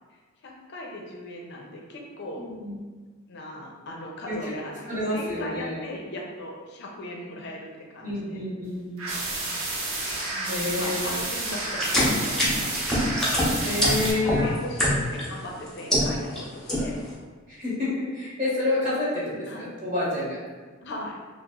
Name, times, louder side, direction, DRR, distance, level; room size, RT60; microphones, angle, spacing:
voice 1, 0.4-2.4 3.3-8.4 10.3-13.1 13.8-14.8 15.1-17.0 19.5-19.7 20.8-21.2, left 1 dB, 55° left, -1 dB, 0.5 m, -38 dB
voice 2, 2.4-2.8 4.3-4.4 4.9-5.8 8.0-9.2 10.5-11.1 13.6-14.5 17.5-20.4, left 2 dB, 40° right, -9 dB, 1.0 m, -29 dB
sound 1, 9.0-14.1, right 2 dB, 85° right, 0.7 m, -30 dB
sound 2, 11.7-15.3 15.7-16.4 16.7-17.1, equal, 5° left, 0.6 m, -24 dB
3.0 x 2.0 x 3.5 m, 1.4 s
head